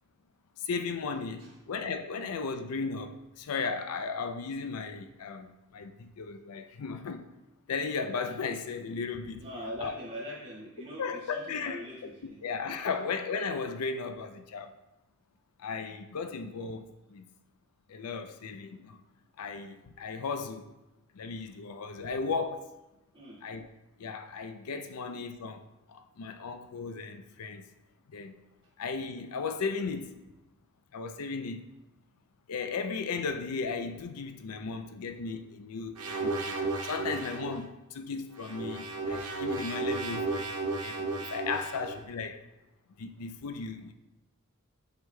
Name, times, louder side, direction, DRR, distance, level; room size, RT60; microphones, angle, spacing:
voice 1, 0.6-7.3 7.7-9.4 9.8-9.9 11.0-12.1 12.4-14.7 15.6-17.3 17.9-19.0 19.4-20.6 21.1-22.8 23.4-23.6 24.0-25.6 25.9-27.7 28.1-28.3 28.8-30.2 30.9-31.6 32.5-42.4 43.0-43.9, left 4 dB, 75° left, 0.5 m, -36 dB
voice 2, 9.4-12.9 23.1-23.4, equal, 25° right, 2.0 m, -42 dB
sound 1, 36.0-37.6 38.3-42.0, right 3 dB, 85° right, 0.9 m, -33 dB
7.7 x 5.7 x 2.2 m
head